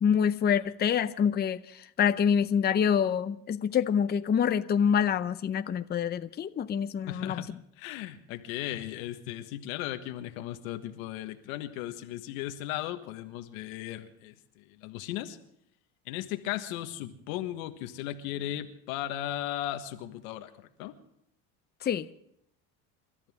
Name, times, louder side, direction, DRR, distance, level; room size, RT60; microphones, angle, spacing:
voice 1, 0.0-7.4 21.8-22.1, left 7 dB, 25° left, 0.7 m, -26 dB
voice 2, 7.1-7.5 7.8-15.4 16.0-21.0, left 13 dB, 85° left, 1.5 m, -36 dB
28.5 x 13.5 x 3.6 m
supercardioid pair, 115°, 40 cm